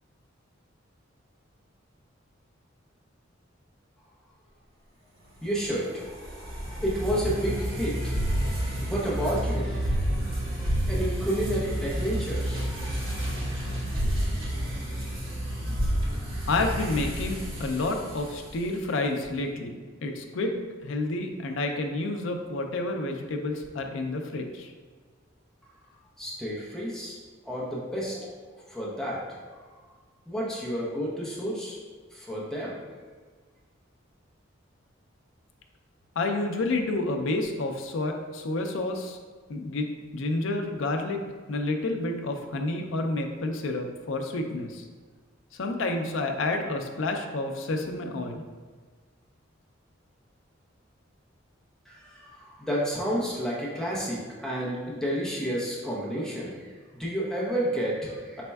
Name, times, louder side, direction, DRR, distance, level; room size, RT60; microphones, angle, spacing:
voice 1, 5.4-6.2 6.4-8.2 8.8-10.0 10.9-12.9 26.2-27.2 27.5-28.3 28.7-29.2 30.3-31.8 32.1-32.8 51.9-56.5 57.0-58.4, equal, ahead, -6 dB, 0.6 m, -30 dB
sound 1, 5.4-18.8, equal, 75° right, 1.2 m, -30 dB
voice 2, 16.5-20.5 20.8-24.7 36.2-39.2 39.5-41.2 41.5-44.8 45.6-48.4, left 2 dB, 75° left, 4 dB, 0.5 m, -29 dB
4.3 x 4.1 x 2.3 m, 1.5 s
head